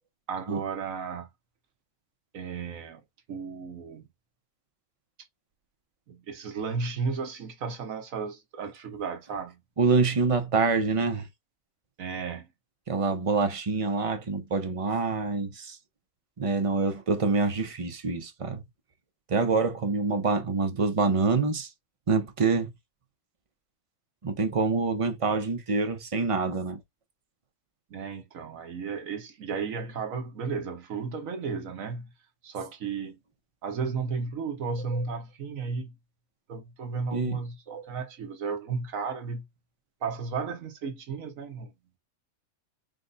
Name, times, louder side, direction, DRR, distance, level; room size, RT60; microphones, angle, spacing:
voice 1, 0.3-1.3 2.3-3.0 3.3-4.1 6.1-9.6 12.0-12.5 27.9-32.1 32.4-33.2 33.6-35.9 36.5-39.5 40.0-41.7, right 5 dB, 65° right, 1.4 m, -34 dB
voice 2, 9.8-11.3 12.9-15.8 16.4-18.6 19.3-21.7 22.1-22.7 24.2-26.8 34.9-35.0 37.1-37.4 37.7-37.8, right 4 dB, 35° right, 0.6 m, -26 dB
5.1 x 2.2 x 3.9 m
omnidirectional pair, 1.5 m